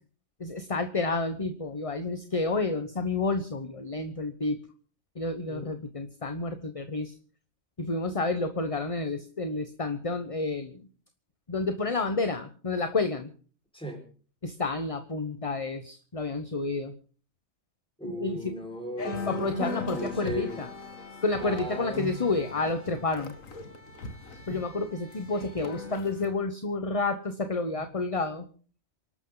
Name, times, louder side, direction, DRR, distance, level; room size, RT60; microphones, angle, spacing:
voice 1, 0.4-4.6 5.2-7.2 7.8-10.8 11.5-13.3 14.4-16.9 18.0-18.6 19.3-20.7 21.2-23.3 24.5-28.4, left 3 dB, 25° left, 8 dB, 1.1 m, -30 dB
voice 2, 18.0-20.6 21.4-22.2 24.5-24.6, right 1 dB, 5° left, 2 dB, 5.1 m, -37 dB
sound 1, 19.0-26.3, left 3 dB, 70° left, 2.4 m, -39 dB
28.0 x 12.5 x 4.0 m, 0.42 s
omnidirectional pair, 1.4 m